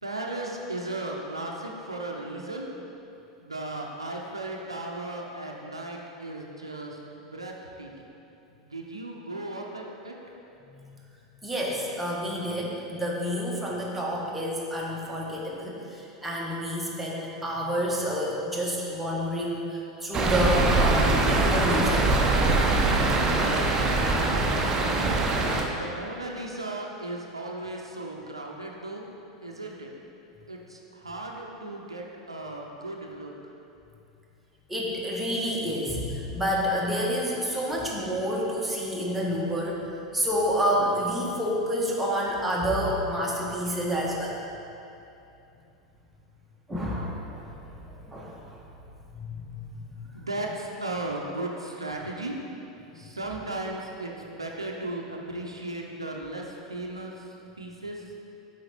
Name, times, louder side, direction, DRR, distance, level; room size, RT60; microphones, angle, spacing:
voice 1, 0.0-2.7 3.4-8.1 8.5-10.1 25.7-29.1 29.4-29.9 30.5-33.3 50.1-52.4 52.9-57.2 57.6-58.1, right 2 dB, 90° right, 0 dB, 0.6 m, -36 dB
voice 2, 11.4-22.2 34.7-39.9 40.1-44.4 46.7-48.6 49.1-49.7 52.9-53.0, equal, 5° right, -4 dB, 1.4 m, -29 dB
sound 1, 20.1-25.7, right 2 dB, 25° right, 0.8 m, -23 dB
7.8 x 4.7 x 4.3 m, 2.8 s
figure-of-eight pair, 85°, 3 cm